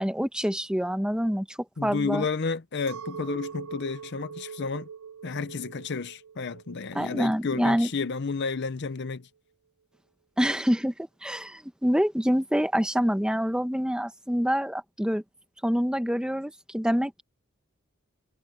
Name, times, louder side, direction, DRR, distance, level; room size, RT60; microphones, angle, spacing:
voice 1, 0.0-2.2 6.9-7.9 10.4-15.2 15.6-17.2, equal, 5° right, 1.1 m, -26 dB
voice 2, 1.8-4.9 5.2-9.3, left 4 dB, 55° left, 0.7 m, -31 dB
Chink clink, 2.9-8.3, right 6 dB, 80° right, 0.8 m, -42 dB
head